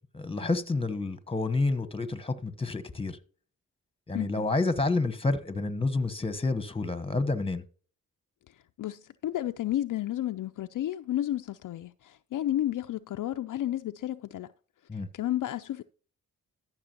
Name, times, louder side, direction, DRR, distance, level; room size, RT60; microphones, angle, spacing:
voice 1, 0.1-3.2 4.1-7.6 14.9-15.1, left 3 dB, 15° left, 1.1 m, -29 dB
voice 2, 4.1-4.4 8.8-14.5 15.1-15.8, left 13 dB, 60° left, 0.5 m, -32 dB
13.5 x 6.0 x 2.9 m
cardioid pair, 55°, 36 cm